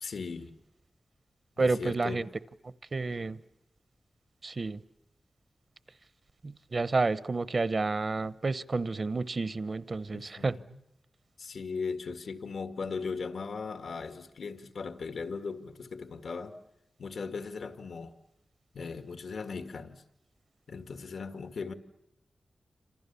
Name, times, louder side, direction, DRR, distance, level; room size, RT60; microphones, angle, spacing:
voice 1, 0.0-0.6 1.6-2.3 10.1-10.8 11.4-16.6 17.0-18.1 18.7-20.0 20.7-21.7, left 5 dB, 90° left, 2.0 m, -38 dB
voice 2, 1.6-2.3 2.9-3.4 4.4-4.8 6.4-10.6, right 3 dB, 45° right, 0.9 m, -30 dB
28.5 x 26.5 x 7.0 m
wide cardioid pair, 120°, 0 cm